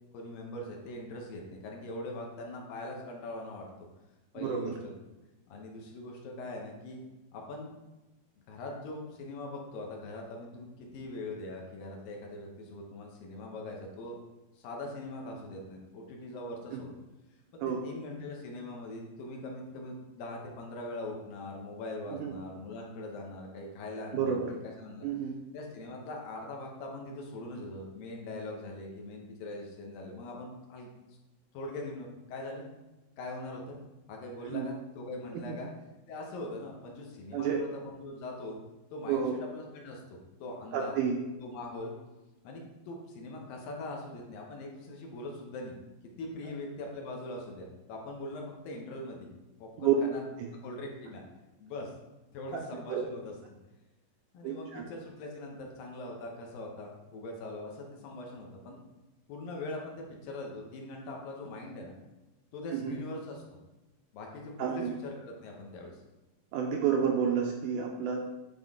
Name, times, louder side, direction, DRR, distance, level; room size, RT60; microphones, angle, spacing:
voice 1, 0.1-3.7 4.3-4.9 5.5-7.0 7.3-7.7 8.5-14.2 14.6-17.0 17.5-24.4 24.6-25.1 25.5-30.9 31.5-32.7 33.2-33.8 34.1-35.7 36.1-38.6 38.9-41.0 41.4-41.9 42.4-45.7 46.2-49.3 49.6-50.2 50.6-51.2 51.6-51.9 52.3-53.3 54.3-58.8 59.3-62.0 62.5-63.4 64.1-66.0, left 2 dB, 75° left, 0 dB, 2.7 m, -42 dB
voice 2, 4.4-4.8 16.7-16.8 17.6-17.8 22.1-22.3 24.1-24.5 25.0-25.3 34.5-34.7 35.5-35.6 37.3-37.6 39.1-39.3 40.7-41.2 49.8-49.9 50.4-50.5 52.9-53.0 54.4-54.9 62.7-63.0 64.6-64.9 66.5-68.2, right 8 dB, 85° right, 1 dB, 1.9 m, -30 dB
9.9 x 3.7 x 3.6 m, 1.0 s
omnidirectional pair, 4.3 m